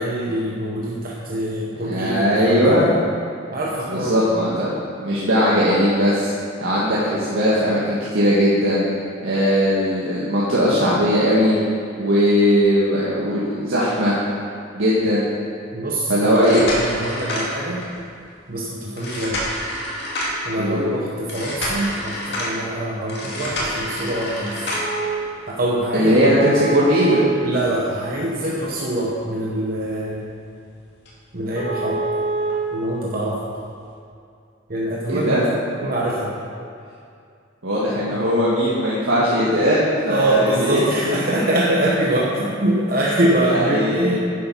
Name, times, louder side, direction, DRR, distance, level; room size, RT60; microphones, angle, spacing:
voice 1, 0.0-3.0 3.5-4.3 15.7-17.9 18.5-19.4 20.4-24.8 25.5-26.2 27.4-30.3 31.3-32.0 32.7-33.4 34.7-35.5 35.8-36.4 40.1-44.2, right 1 dB, 45° right, -4 dB, 1.0 m, -24 dB
voice 2, 1.8-2.9 3.9-4.7 5.0-6.3 6.6-8.8 9.2-11.6 12.0-14.2 14.7-15.2 16.1-16.6 20.6-20.8 25.9-27.2 35.1-35.4 37.6-41.1 43.4-44.2, equal, 75° right, -8 dB, 1.8 m, -19 dB
sound 1, 16.3-18.0 19.0-20.5 21.3-22.5 23.1-25.1 26.2-28.1 28.5-28.6 29.2-29.3 29.7-29.9 30.1-30.2 30.6-30.7 31.1-31.2 31.5-32.5 33.6-33.7, right 1 dB, 55° left, 2.3 m, -27 dB
10.5 x 7.9 x 5.7 m, 2.4 s
head